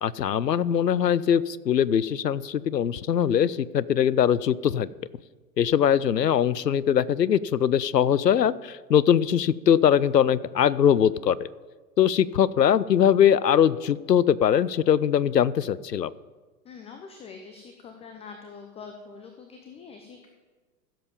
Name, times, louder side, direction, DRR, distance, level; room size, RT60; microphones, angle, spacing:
voice 1, 0.0-4.9 5.6-11.5 12.0-16.1, left 9 dB, 90° left, 20 dB, 0.5 m, -22 dB
voice 2, 16.6-20.3, left 5 dB, 15° left, 5 dB, 0.7 m, -44 dB
15.5 x 7.5 x 5.3 m, 1.4 s
figure-of-eight pair, 105°, 48 cm